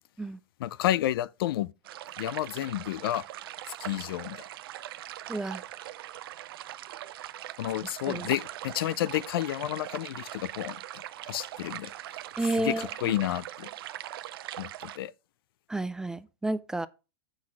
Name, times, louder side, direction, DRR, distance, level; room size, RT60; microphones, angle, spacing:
voice 1, 0.6-1.7 2.2-3.2 3.8-4.4 7.6-11.9 12.6-13.7 14.6-15.1, left 13 dB, 65° left, 0.5 m, -31 dB
sound 1, 1.8-15.0, right 13 dB, 65° right, 0.6 m, -41 dB
voice 2, 5.3-5.6 8.1-8.3 12.4-13.2 15.7-16.9, right 2 dB, 5° right, 0.3 m, -31 dB
7.6 x 6.4 x 4.7 m
hypercardioid pair, 145°, 13 cm